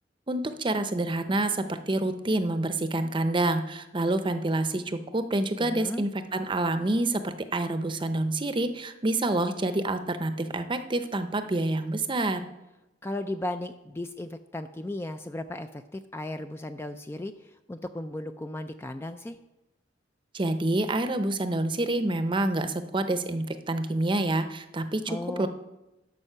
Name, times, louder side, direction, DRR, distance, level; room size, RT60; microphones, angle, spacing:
voice 1, 0.3-12.4 20.3-25.5, right 2 dB, 25° right, 9 dB, 0.7 m, -27 dB
voice 2, 5.6-6.0 13.0-19.4 25.1-25.5, left 1 dB, 15° left, 8 dB, 0.3 m, -36 dB
12.0 x 5.4 x 6.6 m, 0.97 s
head